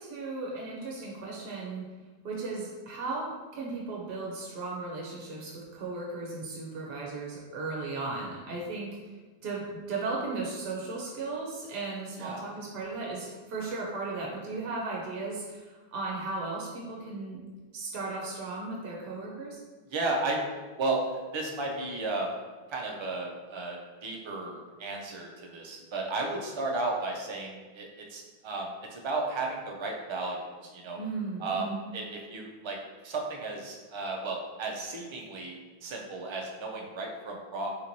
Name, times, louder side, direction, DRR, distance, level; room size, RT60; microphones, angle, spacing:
voice 1, 0.0-1.8 2.2-8.9 9.4-17.4 17.7-19.6 31.0-31.9, right 3 dB, 70° right, -3 dB, 0.8 m, -36 dB
voice 2, 19.9-20.4 20.8-22.3 22.7-31.0 31.4-32.8 33.0-37.7, right 2 dB, 45° right, 0 dB, 0.3 m, -34 dB
3.2 x 2.9 x 2.6 m, 1.3 s
omnidirectional pair, 1.0 m